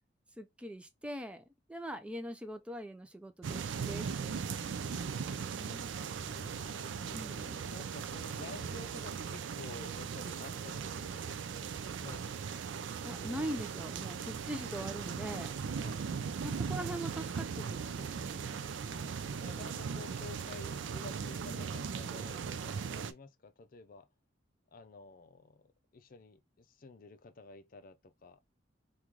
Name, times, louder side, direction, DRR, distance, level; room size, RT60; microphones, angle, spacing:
voice 1, 0.4-5.9 7.1-7.6 13.0-15.5 16.4-18.6, right 1 dB, 5° right, 0.4 m, -43 dB
sound 1, 3.4-23.1, right 6 dB, 80° right, 0.4 m, -38 dB
voice 2, 6.1-11.4 12.0-12.6 15.7-16.1 18.8-24.1 24.7-28.4, left 3 dB, 50° left, 0.5 m, -51 dB
3.1 x 2.3 x 3.7 m
head